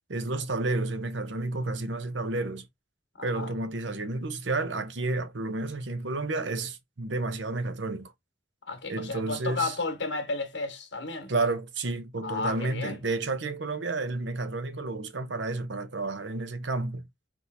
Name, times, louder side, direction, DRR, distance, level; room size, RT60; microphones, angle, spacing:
voice 1, 0.1-2.7 3.2-8.1 8.9-9.8 11.3-17.0, right 2 dB, 75° right, 0.9 m, -31 dB
voice 2, 3.2-3.5 8.7-11.3 12.2-13.0, left 3 dB, 75° left, 1.6 m, -33 dB
4.4 x 3.6 x 2.7 m
head